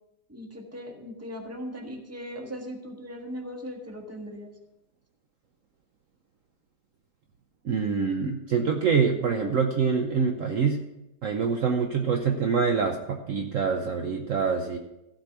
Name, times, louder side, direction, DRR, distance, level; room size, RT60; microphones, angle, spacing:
voice 1, 0.3-4.5, equal, 10° right, 2 dB, 1.3 m, -38 dB
voice 2, 7.6-10.8 11.2-14.8, right 5 dB, 60° right, 4 dB, 1.0 m, -25 dB
15.5 x 5.3 x 5.9 m, 0.92 s
omnidirectional pair, 1.8 m